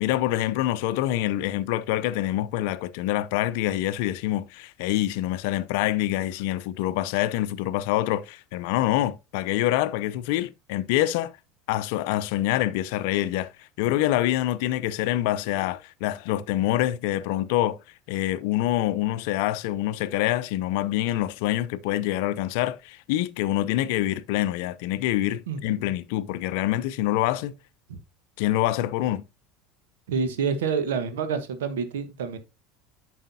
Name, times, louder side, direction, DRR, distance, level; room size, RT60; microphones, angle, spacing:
voice 1, 0.0-11.3 11.7-13.5 13.8-17.8 18.1-27.5 28.4-29.2, left 14 dB, 65° left, 0.5 m, -26 dB
voice 2, 25.5-25.9 27.9-28.0 30.1-32.4, right 6 dB, 75° right, 1.2 m, -28 dB
9.0 x 6.2 x 2.7 m
hypercardioid pair, 75°, 0 cm